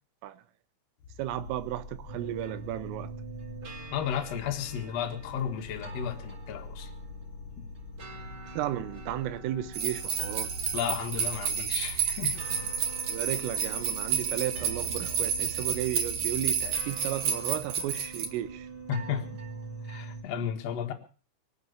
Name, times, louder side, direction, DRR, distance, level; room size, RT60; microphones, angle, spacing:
sound 1, 1.0-20.2, left 4 dB, 30° left, 4.0 m, -48 dB
voice 1, 1.2-3.1 8.5-10.5 13.1-18.7, right 13 dB, 80° right, 3.6 m, -34 dB
sound 2, 2.1-20.2, right 3 dB, 35° right, 2.1 m, -43 dB
voice 2, 3.9-6.9 10.7-12.7 18.9-19.3 19.9-20.9, left 8 dB, 80° left, 1.4 m, -33 dB
sound 3, 9.7-18.3, right 6 dB, 65° right, 1.7 m, -31 dB
24.0 x 8.0 x 7.0 m
omnidirectional pair, 5.9 m